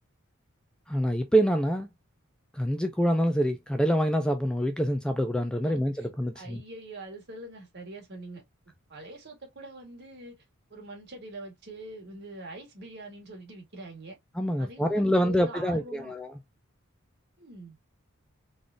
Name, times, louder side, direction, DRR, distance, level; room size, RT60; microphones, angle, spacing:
voice 1, 0.9-1.9 2.5-6.6 14.4-16.3, equal, 5° left, 0.4 m, -26 dB
voice 2, 6.3-8.4 8.9-10.4 10.7-14.2 14.6-16.1 17.4-17.8, right 2 dB, 55° right, 1.9 m, -44 dB
3.8 x 3.6 x 2.3 m
head